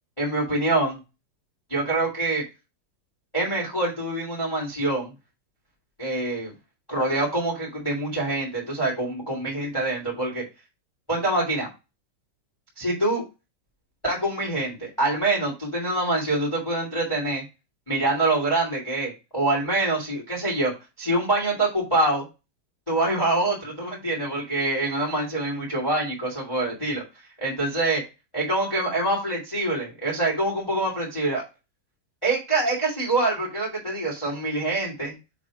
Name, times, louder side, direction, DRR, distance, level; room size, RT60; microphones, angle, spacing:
voice 1, 0.2-1.0 1.7-2.4 3.3-5.1 6.0-6.5 6.9-10.4 11.1-11.7 12.7-13.2 14.0-17.4 17.9-20.7 21.0-22.2 22.9-27.0 27.4-28.0 28.3-31.4 32.2-35.1, right 2 dB, 20° left, -3 dB, 0.8 m, -25 dB
7.1 x 3.6 x 4.9 m, 0.27 s
omnidirectional pair, 5.9 m